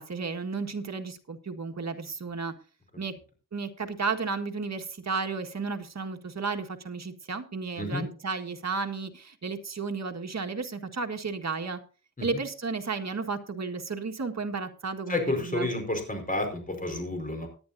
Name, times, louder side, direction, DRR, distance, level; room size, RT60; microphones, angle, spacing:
voice 1, 0.0-2.5 3.0-3.1 3.5-11.8 12.2-15.7, right 4 dB, 55° right, 5 dB, 1.7 m, -33 dB
voice 2, 7.8-8.1 12.2-12.4 15.1-17.5, left 2 dB, 25° left, 4 dB, 4.8 m, -30 dB
18.0 x 11.0 x 2.7 m, 0.37 s
wide cardioid pair, 105°, 32 cm